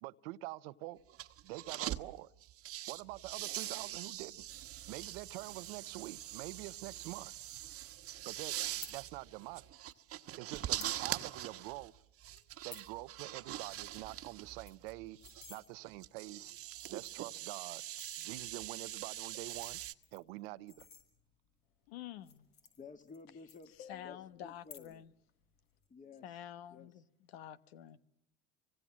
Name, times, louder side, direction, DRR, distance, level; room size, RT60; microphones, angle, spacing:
voice 1, 0.0-1.0 1.4-2.3 2.9-4.5 4.9-7.3 8.2-8.5 8.9-9.7 10.4-11.9 12.6-15.2 15.5-16.5 16.9-17.8 18.2-19.8 20.1-20.9, right 19 dB, 85° right, 0.9 m, -46 dB
sound 1, 1.1-2.0 2.4-19.9, right 13 dB, 50° right, 1.3 m, -43 dB
sound 2, 8.6-8.9 9.9-10.0 10.5-11.0 11.3-11.4 11.7-11.9 12.4-12.9 13.3-13.4 13.7-13.8 14.1-14.2 14.5-15.6 16.3-16.4 16.7-17.3 17.8-18.3 19.3-21.5 22.1-23.2 23.5-24.1 24.5-25.1 25.4-25.8, left 6 dB, 70° left, 6.9 m, -54 dB
voice 2, 21.9-22.5 23.7-25.1 26.2-28.0, left 11 dB, 90° left, 1.2 m, -48 dB
voice 3, 22.8-23.7 24.0-25.0 25.9-26.3 26.7-26.9, left 5 dB, 25° left, 2.0 m, -53 dB
28.0 x 25.0 x 7.4 m
supercardioid pair, 100°, 29 cm